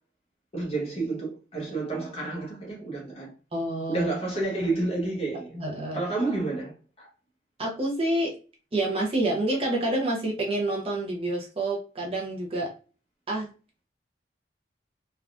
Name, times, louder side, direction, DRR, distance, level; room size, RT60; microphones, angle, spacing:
voice 1, 0.5-3.3 3.9-5.6 5.9-7.1, right 2 dB, 35° left, 0.9 m, -30 dB
voice 2, 3.5-4.1 5.5-6.0 7.6-8.3 8.7-12.7 13.3-13.5, right 1 dB, 30° right, 0.6 m, -28 dB
3.3 x 2.3 x 2.5 m
head